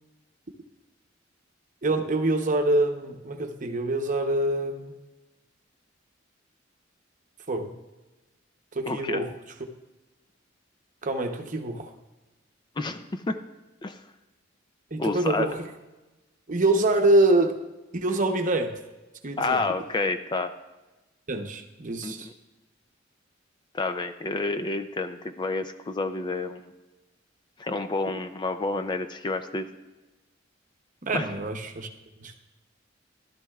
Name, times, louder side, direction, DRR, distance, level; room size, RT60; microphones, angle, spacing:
voice 1, 1.8-5.0 7.5-7.7 8.7-9.3 11.0-11.9 14.9-15.7 16.5-17.6 17.9-18.7 19.2-19.6 21.3-22.3 31.0-31.9 32.2-32.4, right 2 dB, 40° right, 5 dB, 0.8 m, -25 dB
voice 2, 8.9-9.2 12.8-13.4 13.8-14.0 15.0-15.5 19.4-20.5 22.0-22.3 23.7-26.7 27.6-29.7 31.1-31.2, left 3 dB, 25° left, 8 dB, 0.4 m, -29 dB
14.5 x 12.0 x 2.4 m, 1.1 s
head